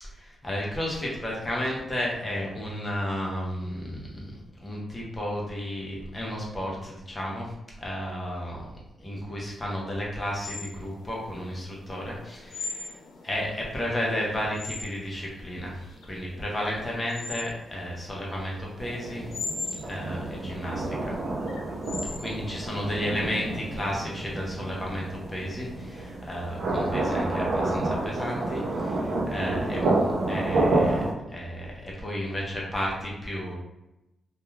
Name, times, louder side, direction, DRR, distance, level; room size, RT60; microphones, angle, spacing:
voice 1, 0.2-7.5 7.8-8.7 9.0-13.0 13.2-19.3 19.8-21.1 22.2-33.5, equal, 15° left, -3 dB, 0.6 m, -33 dB
sound 1, 10.4-23.9, left 4 dB, 65° left, 0.3 m, -40 dB
sound 2, 18.8-31.1, right 2 dB, 55° right, 0.5 m, -29 dB
2.3 x 2.3 x 3.0 m, 0.94 s
wide cardioid pair, 180°, 0 cm